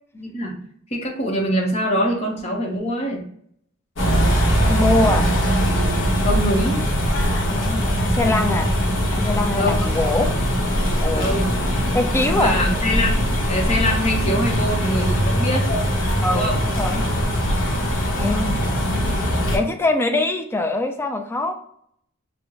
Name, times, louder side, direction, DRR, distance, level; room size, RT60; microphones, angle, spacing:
voice 1, 0.1-0.6 0.9-3.2 6.2-6.8 9.5-9.9 11.1-11.5 12.3-15.7 16.3-16.6, equal, 30° left, -1 dB, 0.8 m, -24 dB
sound 1, 4.0-19.6, equal, 65° left, 0.8 m, -21 dB
voice 2, 4.3-5.3 7.5-8.7 9.1-10.3 11.0-11.3 11.9-12.5 16.2-17.0 18.2-18.6 19.5-21.5, left 2 dB, 10° left, 5 dB, 0.3 m, -23 dB
4.9 x 2.0 x 3.0 m, 0.67 s
head